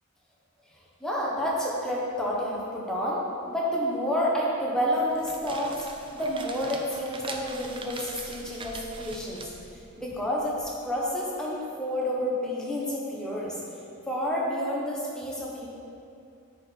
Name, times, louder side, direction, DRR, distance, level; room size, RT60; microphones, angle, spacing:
voice 1, 1.0-5.9 6.1-9.4 10.0-13.6 14.1-15.7, equal, 5° left, -5 dB, 1.1 m, -29 dB
sound 1, 5.0-10.7, right 3 dB, 25° right, 0.4 m, -42 dB
9.3 x 4.6 x 4.5 m, 2.5 s
head